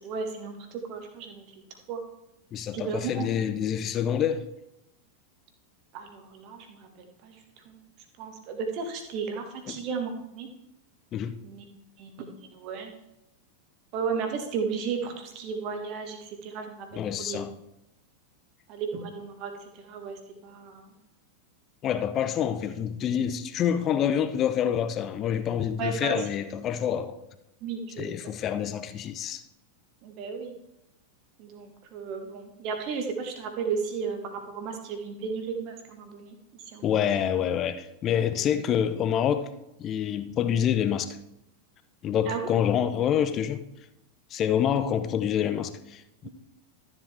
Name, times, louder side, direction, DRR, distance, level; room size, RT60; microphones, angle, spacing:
voice 1, 0.0-1.6 1.9-2.0 2.7-3.3 5.9-7.3 7.6-7.8 8.2-10.5 11.4-11.6 12.0-12.9 13.9-17.4 18.7-20.9 25.8-26.2 27.6-28.1 30.0-30.5 31.4-37.1 42.3-42.4 46.2-46.3, right 5 dB, 40° right, 1.6 m, -34 dB
voice 2, 2.5-4.5 9.7-9.8 11.1-11.4 16.9-17.5 21.8-27.2 28.0-29.4 36.8-39.5 39.8-41.2 42.0-43.6 44.3-46.3, left 9 dB, 30° left, 0.6 m, -27 dB
12.5 x 7.5 x 3.6 m
figure-of-eight pair, 90°, 0 cm